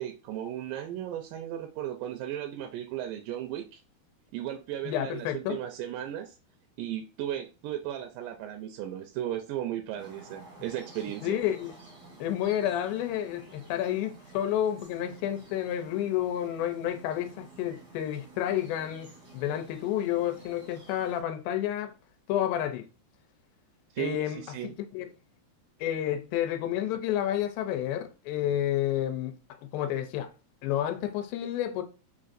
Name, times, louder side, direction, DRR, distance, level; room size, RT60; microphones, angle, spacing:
voice 1, 0.0-3.8 4.3-6.3 6.8-11.4 23.9-24.7, right 11 dB, 80° right, 2.0 m, -35 dB
voice 2, 4.8-5.6 11.2-11.7 12.2-21.9 22.3-22.9 24.0-24.4 24.6-25.1 25.8-30.3 30.6-31.8, left 11 dB, 90° left, 2.4 m, -30 dB
sound 1, 10.0-21.2, right 2 dB, 60° right, 1.0 m, -52 dB
5.5 x 2.5 x 2.4 m
omnidirectional pair, 4.2 m